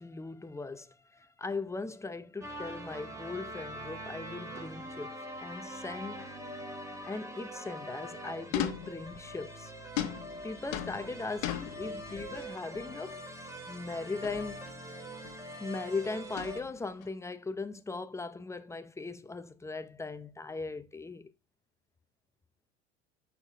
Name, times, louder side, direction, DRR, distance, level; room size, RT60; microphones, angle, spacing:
voice 1, 0.0-6.3 7.0-9.7 10.4-13.2 13.6-14.6 15.6-21.3, left 3 dB, 10° left, 0.6 m, -39 dB
sound 1, 2.4-16.6, right 1 dB, 10° right, 1.8 m, -43 dB
sound 2, 8.5-9.4 10.0-12.5 12.7-13.1 14.2-14.8 15.0-15.4 16.3-17.1, left 11 dB, 60° left, 1.1 m, -38 dB
6.3 x 5.9 x 3.4 m
hypercardioid pair, 75°, 35 cm